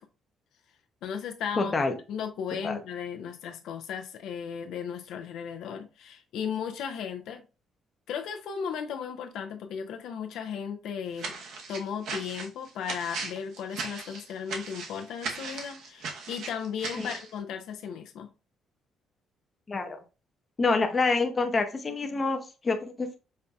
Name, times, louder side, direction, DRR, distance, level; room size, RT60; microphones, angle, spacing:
voice 1, 1.0-1.7 2.1-7.4 8.1-11.4 11.7-18.3, left 7 dB, 75° left, 0.5 m, -35 dB
voice 2, 1.6-1.9 2.6-2.8 17.0-17.1 19.7-20.0 20.6-23.2, left 3 dB, 25° left, 0.6 m, -27 dB
sound 1, 11.2-17.3, right 4 dB, 70° right, 0.8 m, -38 dB
5.3 x 2.6 x 2.3 m
cardioid pair, 160°, 0 cm